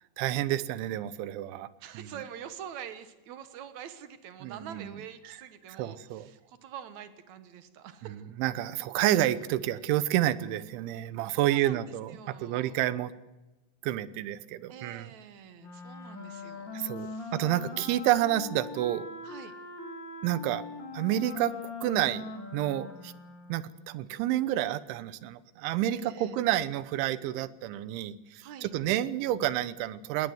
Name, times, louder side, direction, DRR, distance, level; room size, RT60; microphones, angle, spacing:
voice 1, 0.2-1.7 1.9-2.1 4.4-5.0 5.8-6.3 8.1-13.1 13.8-15.1 16.7-19.1 20.2-20.6 20.9-22.2 22.5-23.1 23.5-30.3, right 13 dB, 90° right, 16 dB, 3.3 m, -29 dB
voice 2, 1.8-8.2 11.3-12.8 14.7-17.3 19.2-19.5 26.0-26.4 28.4-28.7, right 9 dB, 70° right, 11 dB, 1.7 m, -45 dB
Wind instrument woodwind instrument, 15.6-23.8, left 3 dB, 35° left, 2.1 m, -41 dB
19.5 x 19.0 x 7.9 m, 1.1 s
omnidirectional pair, 5.2 m